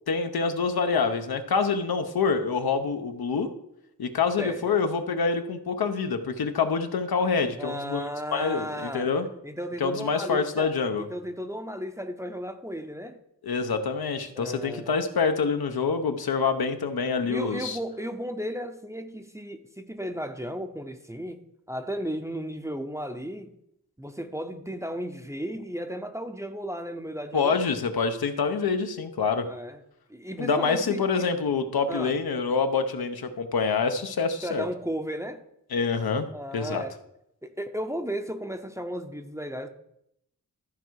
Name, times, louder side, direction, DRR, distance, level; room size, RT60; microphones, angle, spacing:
voice 1, 0.1-3.5 4.0-8.0 8.3-9.3 9.8-11.0 13.4-17.8 27.3-29.5 30.4-34.6 35.7-36.3 36.5-36.8, left 5 dB, 85° left, 0.9 m, -26 dB
voice 2, 4.4-4.8 7.6-9.1 9.4-13.2 14.4-14.9 17.3-23.6 24.0-27.6 29.3-29.8 30.1-31.3 31.9-32.2 34.4-35.4 36.3-37.0 37.4-39.7, equal, 10° right, 0.6 m, -34 dB
13.5 x 4.6 x 4.7 m
wide cardioid pair, 105°, 36 cm